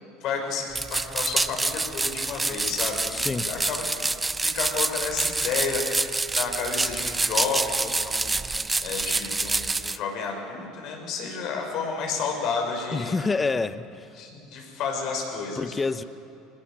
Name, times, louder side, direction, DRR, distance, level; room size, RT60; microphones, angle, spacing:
voice 1, 0.2-4.1 4.4-13.2 14.1-15.8, left 5 dB, 60° left, 5.9 m, -31 dB
sound 1, 0.7-10.0, right 3 dB, 15° right, 0.6 m, -27 dB
voice 2, 3.1-3.5 12.9-14.1 15.6-16.0, left 4 dB, 20° left, 0.9 m, -27 dB
23.5 x 20.0 x 7.0 m
hypercardioid pair, 80°, 0 cm